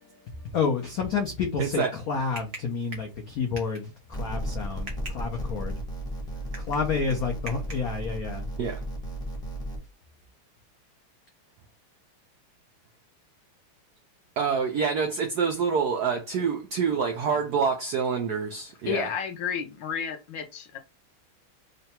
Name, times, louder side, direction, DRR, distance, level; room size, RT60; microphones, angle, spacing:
voice 1, 0.0-3.9 4.2-4.9 5.1-5.8 6.6-8.4, left 5 dB, 85° left, 0.7 m, -29 dB
voice 2, 1.6-1.9 4.9-5.1 8.6-8.8 14.4-19.1, right 6 dB, 85° right, 0.8 m, -27 dB
sound 1, 4.1-9.8, right 1 dB, 5° left, 0.5 m, -34 dB
voice 3, 18.9-20.8, left 7 dB, 70° left, 1.1 m, -31 dB
3.8 x 2.2 x 4.2 m
omnidirectional pair, 2.4 m